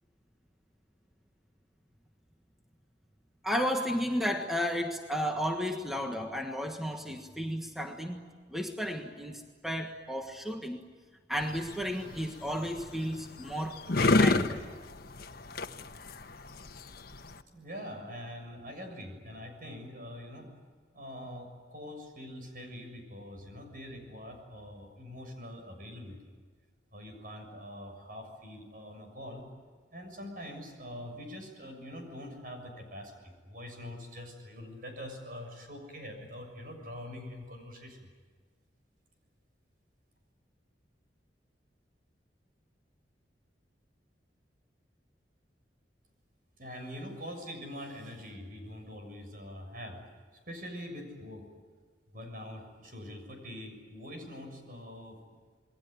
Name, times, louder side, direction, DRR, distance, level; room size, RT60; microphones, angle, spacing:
voice 1, 3.4-10.8 11.3-14.6, equal, ahead, 3 dB, 1.4 m, -33 dB
sound 1, 11.3-17.4, left 2 dB, 60° left, 1.2 m, -30 dB
voice 2, 17.5-20.5 20.9-26.3 26.9-29.4 29.9-38.0 46.6-50.0 50.5-51.4 52.1-55.2, equal, 55° right, 4 dB, 7.0 m, -44 dB
28.5 x 21.5 x 9.4 m, 1.5 s
head